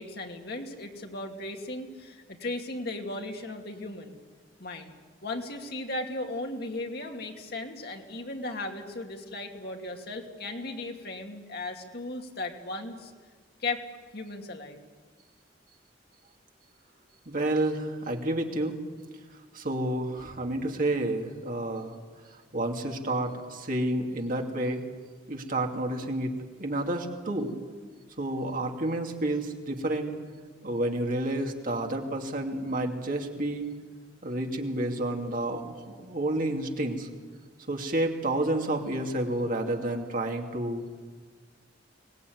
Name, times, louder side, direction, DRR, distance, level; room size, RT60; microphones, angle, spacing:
voice 1, 0.0-4.2 4.6-4.9 5.2-13.1 13.6-13.8 14.1-14.8, left 2 dB, 60° left, 3 dB, 2.6 m, -36 dB
voice 2, 17.3-18.8 19.5-21.9 22.5-24.8 25.3-26.3 26.6-27.5 28.2-30.1 30.6-33.7 34.2-37.1 37.7-40.8, right 1 dB, 50° right, 2 dB, 2.7 m, -30 dB
24.0 x 19.5 x 9.5 m, 1.5 s
head